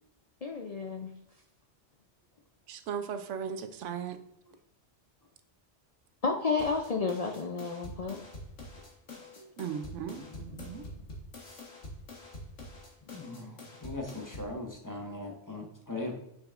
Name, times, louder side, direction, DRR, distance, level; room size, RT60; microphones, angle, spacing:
voice 1, 0.4-1.1 6.2-8.2, left 4 dB, 50° left, 2 dB, 0.5 m, -31 dB
voice 2, 2.7-4.2 9.6-10.8, right 7 dB, 85° right, 9 dB, 1.0 m, -37 dB
sound 1, 6.6-14.6, left 1 dB, 90° left, 1.8 m, -46 dB
voice 3, 13.1-16.1, left 2 dB, 20° left, 1 dB, 0.8 m, -39 dB
6.7 x 5.9 x 2.5 m, 0.81 s
omnidirectional pair, 1.2 m